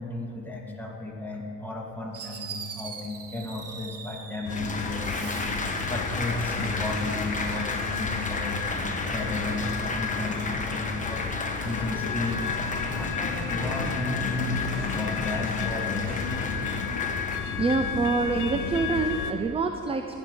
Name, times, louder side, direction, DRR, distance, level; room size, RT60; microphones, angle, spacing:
voice 1, 0.0-8.8 9.1-12.6 12.9-16.6, left 2 dB, 5° left, -2 dB, 1.8 m, -34 dB
Fireworks, 1.7-1.8 2.1-4.6 4.9-5.8, right 6 dB, 50° right, 1.0 m, -41 dB
sound 1, 4.4-19.3, left 6 dB, 85° left, 0.8 m, -32 dB
Applause, 4.5-17.4, left 3 dB, 25° left, 1.1 m, -33 dB
voice 2, 17.6-20.2, right 4 dB, 20° right, 6 dB, 0.4 m, -26 dB
14.5 x 5.3 x 6.3 m, 2.9 s
cardioid pair, 90°, 30 cm